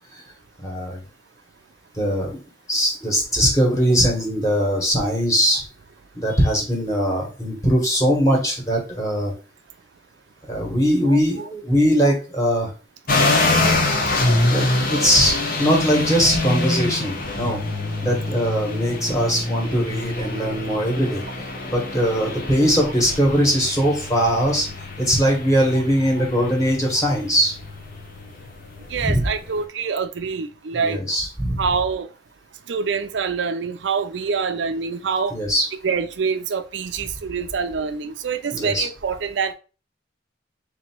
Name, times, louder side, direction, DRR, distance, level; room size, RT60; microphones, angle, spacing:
voice 1, 0.6-1.0 2.0-2.4 2.7-5.6 6.1-9.3 10.5-12.7 14.5-17.6 18.0-21.2 21.6-24.7 25.0-27.5 29.0-29.3 30.7-31.6 35.3-35.7 38.5-38.8, equal, 20° left, 1.5 m, -21 dB
sound 1, 13.1-29.6, left 2 dB, 50° left, 1.0 m, -25 dB
voice 2, 28.9-31.0 31.6-32.1 32.7-35.3 35.8-39.5, right 5 dB, 85° right, 0.5 m, -25 dB
3.4 x 2.9 x 4.4 m
head